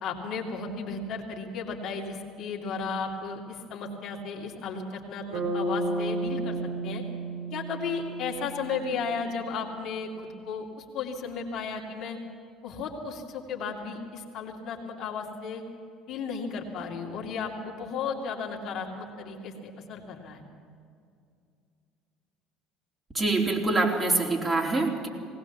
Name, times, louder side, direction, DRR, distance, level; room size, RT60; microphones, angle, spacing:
voice 1, 0.0-6.6 6.8-7.0 7.5-12.2 12.6-15.6 16.1-20.4, left 5 dB, 55° left, 0 dB, 2.6 m, -34 dB
Bass guitar, 5.3-9.4, right 2 dB, 70° right, 6.5 m, -32 dB
voice 2, 23.1-25.1, right 3 dB, 20° right, 0 dB, 3.8 m, -25 dB
19.5 x 18.5 x 7.2 m, 2.3 s
hypercardioid pair, 60°, 0 cm